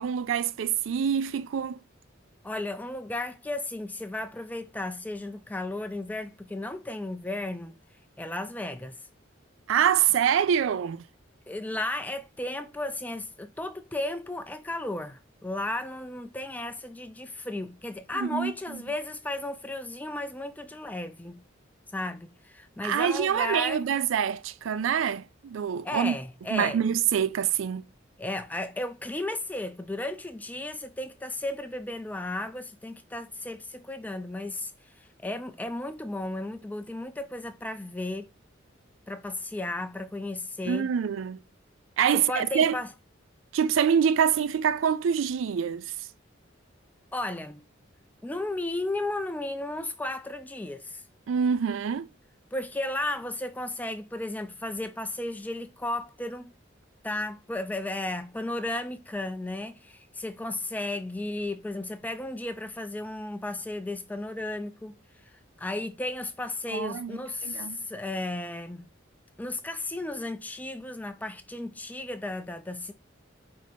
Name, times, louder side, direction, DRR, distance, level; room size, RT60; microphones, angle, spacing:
voice 1, 0.0-1.8 9.7-11.0 18.1-18.5 22.8-26.2 26.5-27.8 40.6-41.4 42.0-42.8 43.5-45.9 51.3-52.1 66.7-67.8, right 8 dB, 75° right, 0.3 m, -25 dB
voice 2, 2.4-7.8 8.2-9.0 11.5-21.4 21.9-23.9 25.8-26.8 28.2-34.7 35.0-38.3 39.1-40.9 42.3-42.9 47.1-47.6 48.2-51.0 52.5-56.5 57.0-64.9 65.6-68.9 69.4-72.9, left 2 dB, 10° left, 0.4 m, -34 dB
4.6 x 2.8 x 4.1 m
head